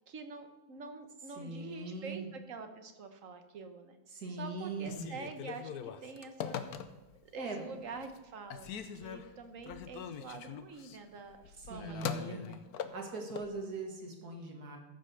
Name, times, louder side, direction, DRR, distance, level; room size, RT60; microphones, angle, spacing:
voice 1, 0.1-4.0 4.4-6.7 7.3-12.6, right 4 dB, 60° right, 7 dB, 1.3 m, -46 dB
voice 2, 1.3-2.3 4.1-5.1 7.4-7.7 11.6-12.6 12.9-14.8, right 3 dB, 85° right, 2 dB, 2.4 m, -41 dB
Telephone, 4.8-7.3 7.7-8.2 8.5-13.5, left 8 dB, 80° left, 1.3 m, -42 dB
13.5 x 5.4 x 6.6 m, 1.1 s
omnidirectional pair, 1.6 m